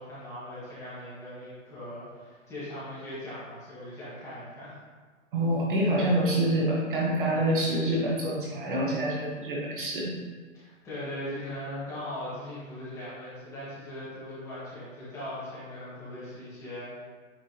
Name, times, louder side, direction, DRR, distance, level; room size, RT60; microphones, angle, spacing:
voice 1, 0.0-4.7 10.5-17.0, left 1 dB, 5° left, -11 dB, 1.6 m, -39 dB
voice 2, 5.3-10.2, right 1 dB, 40° right, -3 dB, 1.2 m, -26 dB
8.9 x 4.8 x 2.9 m, 1.5 s
hypercardioid pair, 165°, 40 cm